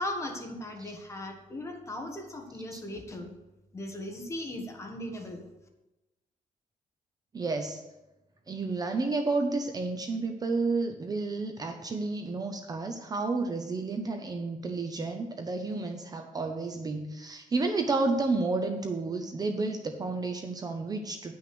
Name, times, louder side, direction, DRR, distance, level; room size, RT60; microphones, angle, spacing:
voice 1, 0.0-3.3 3.7-5.5, left 1 dB, 20° left, 2 dB, 1.5 m, -37 dB
voice 2, 7.3-7.8 8.5-21.3, right 3 dB, 25° right, 5 dB, 0.7 m, -31 dB
10.5 x 6.0 x 6.1 m, 0.99 s
wide cardioid pair, 175°, 14 cm